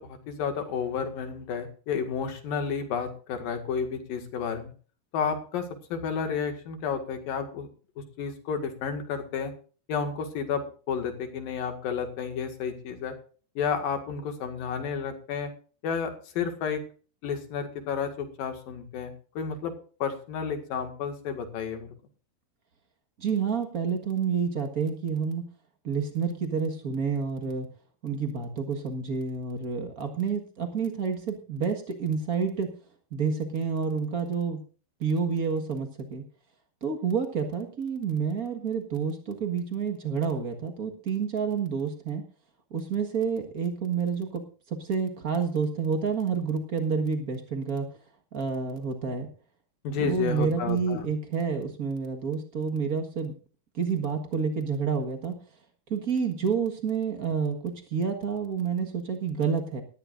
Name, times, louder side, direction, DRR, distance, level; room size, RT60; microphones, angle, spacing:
voice 1, 0.0-4.7 5.1-5.7 5.9-7.7 8.2-9.5 9.9-13.1 13.6-15.5 15.8-16.8 17.2-19.7 20.0-21.9 49.8-51.0, left 6 dB, 70° left, 6 dB, 3.6 m, -31 dB
voice 2, 23.2-25.5 25.8-27.7 28.0-32.7 33.1-34.6 35.0-36.2 36.8-42.2 42.7-44.4 44.7-47.9 48.3-49.3 50.0-53.3 53.7-55.4 55.9-59.8, right 6 dB, 90° right, 4 dB, 0.7 m, -29 dB
19.0 x 14.0 x 2.6 m, 0.39 s
omnidirectional pair, 4.3 m